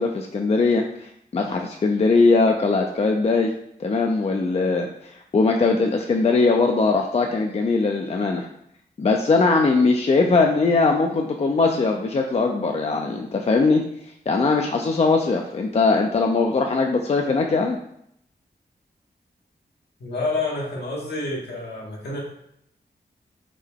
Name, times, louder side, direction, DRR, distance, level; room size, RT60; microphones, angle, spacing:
voice 1, 0.0-3.5 3.8-8.5 9.0-13.8 14.3-17.8, left 3 dB, 40° left, 2 dB, 0.4 m, -20 dB
voice 2, 20.0-22.2, left 2 dB, 80° left, -3 dB, 1.0 m, -28 dB
3.7 x 2.2 x 3.4 m, 0.73 s
cardioid pair, 45°, 17 cm